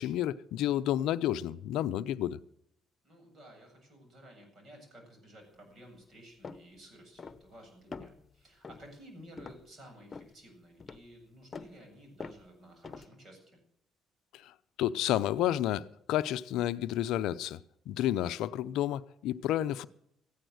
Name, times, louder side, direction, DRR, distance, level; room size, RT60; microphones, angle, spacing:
voice 1, 0.0-2.4 14.4-14.5 14.8-17.6 17.9-19.9, left 12 dB, 80° left, 0.6 m, -30 dB
voice 2, 3.0-13.6, equal, 50° right, 7.9 m, -54 dB
sound 1, 6.4-6.7 7.2-7.6 7.9-8.3 8.6-8.9 9.4-9.6 10.1-10.4 10.8-11.1 11.5-11.7 12.2-12.5 12.8-13.1, left 4 dB, 40° left, 1.0 m, -45 dB
14.5 x 10.0 x 7.9 m
supercardioid pair, 70°, 0 cm